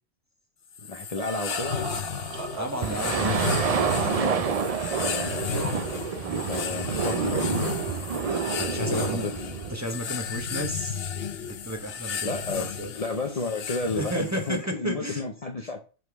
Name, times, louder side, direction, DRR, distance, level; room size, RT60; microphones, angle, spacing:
sound 1, 0.7-14.6, left 7 dB, 65° left, 0.9 m, -34 dB
voice 1, 0.9-2.0 5.0-5.4 6.3-7.5 8.9-9.6 12.2-15.8, left 3 dB, 40° left, 0.7 m, -32 dB
sound 2, 1.2-4.1 4.4-5.8, right 4 dB, 75° right, 1.4 m, -38 dB
voice 2, 2.6-3.7 4.4-4.5 7.9-9.3 9.7-11.1 11.4-12.9 13.9-15.2 15.6-15.7, equal, 15° right, 0.8 m, -33 dB
sound 3, 2.8-9.8, right 6 dB, 45° right, 0.5 m, -28 dB
5.2 x 3.9 x 4.7 m
omnidirectional pair, 1.1 m